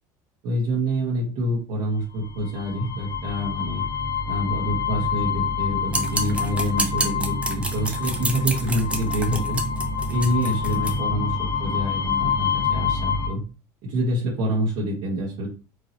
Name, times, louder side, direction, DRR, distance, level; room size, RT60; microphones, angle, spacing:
voice 1, 0.4-3.8 4.2-9.6 10.1-13.4 13.8-15.5, equal, 65° right, -5 dB, 1.5 m, -26 dB
sound 1, 2.2-13.3, left 5 dB, 55° left, 1.6 m, -27 dB
sound 2, 5.9-10.9, right 2 dB, 10° right, 0.8 m, -29 dB
4.8 x 2.8 x 2.8 m, 0.34 s
supercardioid pair, 105°, 10 cm